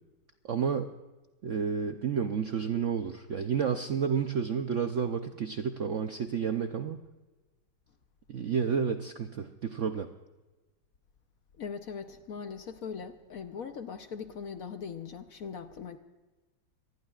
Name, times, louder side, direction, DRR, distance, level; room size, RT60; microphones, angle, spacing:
voice 1, 0.4-0.9 1.4-7.0 8.3-10.1, right 7 dB, 65° right, 7 dB, 0.7 m, -30 dB
voice 2, 11.6-16.0, left 6 dB, 60° left, 8 dB, 1.0 m, -40 dB
26.0 x 19.0 x 2.4 m, 1.2 s
omnidirectional pair, 2.1 m